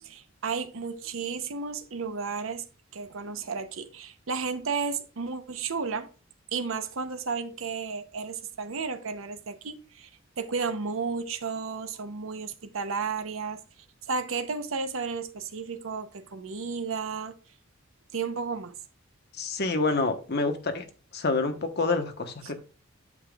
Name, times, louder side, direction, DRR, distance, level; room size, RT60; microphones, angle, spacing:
voice 1, 0.0-2.6 2.9-6.1 6.5-10.1 10.4-13.6 14.1-17.3 18.1-18.7 22.4-22.5, right 5 dB, 70° right, 0.8 m, -33 dB
voice 2, 19.4-20.8 21.1-22.6, left 3 dB, 55° left, 1.1 m, -27 dB
8.5 x 6.9 x 2.3 m
head